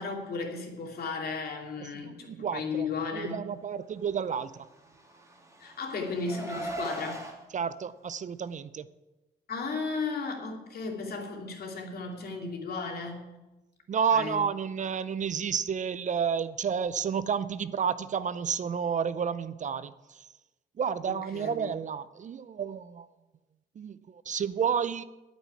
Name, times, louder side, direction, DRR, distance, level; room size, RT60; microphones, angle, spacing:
voice 1, 0.0-3.5 5.6-7.3 9.5-13.3 14.1-14.4 21.0-21.7, left 4 dB, 60° left, 1 dB, 2.9 m, -35 dB
voice 2, 1.8-4.7 7.5-8.9 13.9-20.3 20.8-23.1 23.8-25.0, right 7 dB, 45° right, 15 dB, 0.5 m, -31 dB
Car, 4.8-7.3, right 1 dB, 15° right, 2.5 m, -39 dB
9.3 x 8.4 x 9.6 m, 1.1 s
cardioid pair, 110°, 18 cm